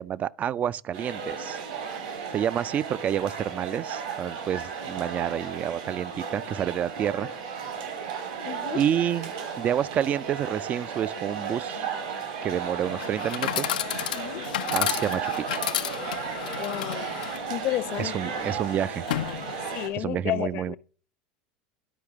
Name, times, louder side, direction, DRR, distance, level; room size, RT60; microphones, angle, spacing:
voice 1, 0.0-1.6 2.3-7.3 8.7-9.3 9.6-11.8 12.4-13.8 14.7-15.6 18.0-19.0 20.0-20.8, right 9 dB, 35° right, 0.4 m, -29 dB
sound 1, 0.9-19.9, right 6 dB, 80° right, 3.8 m, -34 dB
voice 2, 8.5-8.8 14.1-14.5 16.6-17.1 17.5-18.2 19.7-20.8, left 14 dB, 55° left, 0.8 m, -31 dB
Chatter / Coin (dropping), 12.9-19.9, left 12 dB, 85° left, 0.5 m, -33 dB
12.0 x 4.8 x 3.5 m
hypercardioid pair, 100°, 4 cm